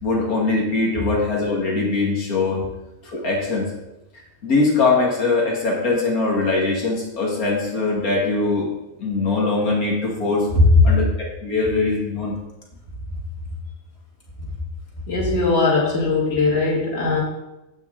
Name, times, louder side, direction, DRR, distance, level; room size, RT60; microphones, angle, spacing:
voice 1, 0.0-2.6 3.1-3.7 4.4-8.7 9.0-10.5 10.8-11.0 11.4-12.4, left 3 dB, 80° left, -2 dB, 2.2 m, -21 dB
voice 2, 15.1-17.2, left 3 dB, 45° left, -3 dB, 2.7 m, -19 dB
11.5 x 8.1 x 3.8 m, 0.95 s
omnidirectional pair, 1.5 m